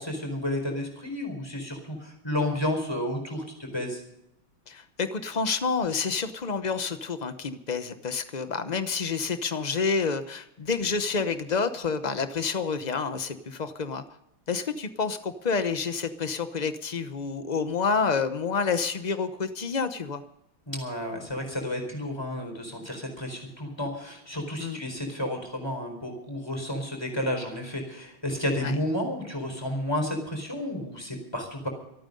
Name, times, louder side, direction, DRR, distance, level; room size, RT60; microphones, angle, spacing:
voice 1, 0.0-4.0 20.7-31.7, left 1 dB, 10° left, 3 dB, 4.4 m, -31 dB
voice 2, 4.7-14.0 14.5-20.2 24.6-24.8 28.6-28.7, left 5 dB, 85° left, 9 dB, 0.3 m, -28 dB
25.5 x 9.2 x 5.3 m, 0.79 s
omnidirectional pair, 2.2 m